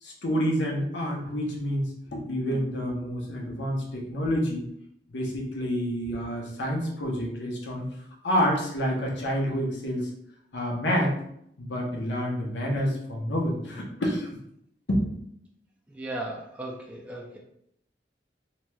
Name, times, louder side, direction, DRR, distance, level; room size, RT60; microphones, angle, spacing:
voice 1, 0.0-4.6 5.1-7.9 8.2-10.1 10.5-11.1 11.6-14.3 14.9-15.1, equal, 85° left, -1 dB, 0.8 m, -28 dB
voice 2, 15.9-17.4, right 1 dB, 5° right, -2 dB, 0.3 m, -36 dB
3.0 x 2.9 x 2.2 m, 0.73 s
head